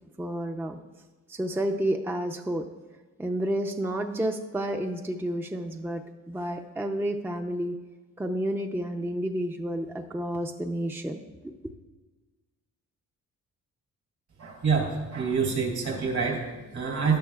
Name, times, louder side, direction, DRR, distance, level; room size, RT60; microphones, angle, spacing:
voice 1, 0.2-0.8 1.3-2.7 3.2-6.0 6.3-7.8 8.2-11.2 11.4-11.7, right 1 dB, 5° right, 4 dB, 0.5 m, -30 dB
voice 2, 14.4-17.2, right 5 dB, 65° right, -1 dB, 3.3 m, -27 dB
14.0 x 11.0 x 2.3 m, 1.2 s
cardioid pair, 100°, 31 cm